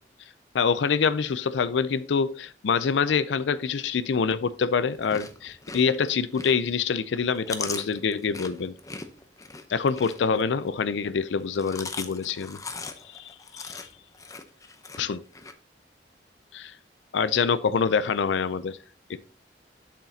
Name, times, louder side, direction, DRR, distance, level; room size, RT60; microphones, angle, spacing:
voice 1, 0.5-8.7 9.7-12.6 13.1-13.7 15.0-15.2 16.5-16.7 17.1-18.8, left 6 dB, 80° left, 0.4 m, -25 dB
Chewing mastication, 4.9-6.8 7.2-10.7 11.4-15.5, left 4 dB, 20° left, 0.7 m, -39 dB
8.1 x 7.2 x 2.7 m
head